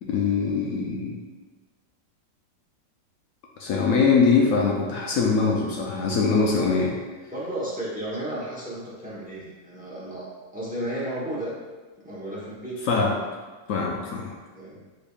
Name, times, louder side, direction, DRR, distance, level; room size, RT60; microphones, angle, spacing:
voice 1, 0.0-1.3 3.6-7.0 12.9-13.2 13.7-14.3, left 4 dB, 80° left, -1 dB, 0.7 m, -22 dB
voice 2, 7.3-10.3 10.5-11.5 12.0-12.8 14.5-14.8, right 1 dB, 10° right, -6 dB, 0.4 m, -33 dB
4.9 x 4.4 x 2.4 m, 1.3 s
omnidirectional pair, 2.0 m